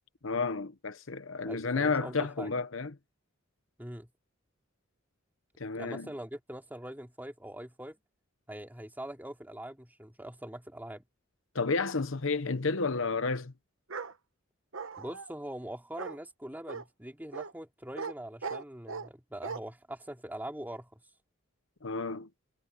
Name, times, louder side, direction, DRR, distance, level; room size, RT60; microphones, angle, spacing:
voice 1, 0.2-3.0 5.6-6.1 11.5-13.5 21.8-22.3, left 4 dB, 70° left, 1.0 m, -31 dB
voice 2, 1.4-2.5 3.8-4.1 5.7-8.0 8.5-11.0 15.0-21.0, right 1 dB, 10° right, 2.9 m, -43 dB
Bark, 13.9-14.1 14.7-15.3 16.0-16.2 16.7-16.8 17.3-17.5 18.0-18.1 18.4-19.1 19.4-19.6, right 5 dB, 70° right, 1.1 m, -38 dB
head